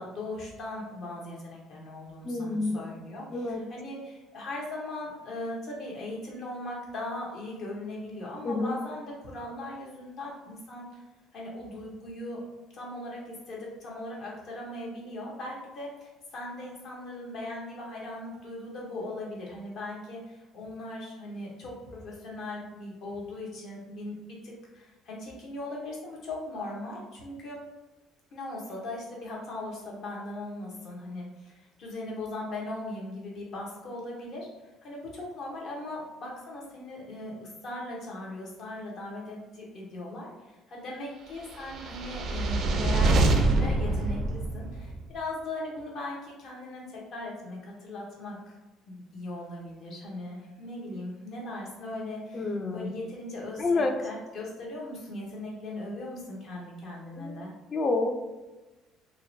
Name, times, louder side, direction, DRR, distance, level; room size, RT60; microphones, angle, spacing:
voice 1, 0.0-11.0 11.3-12.4 12.7-27.6 28.3-34.5 34.8-48.5 48.9-57.5, left 2 dB, 60° left, -3 dB, 0.9 m, -39 dB
voice 2, 2.2-2.8 3.3-3.6 8.4-8.8 52.3-52.9 53.6-54.0 57.2-57.4 57.7-58.1, left 3 dB, 40° left, 4 dB, 0.4 m, -28 dB
sound 1, 41.6-45.0, right 2 dB, 60° right, 0.4 m, -25 dB
2.7 x 2.1 x 2.6 m, 1.1 s
supercardioid pair, 70°, 0 cm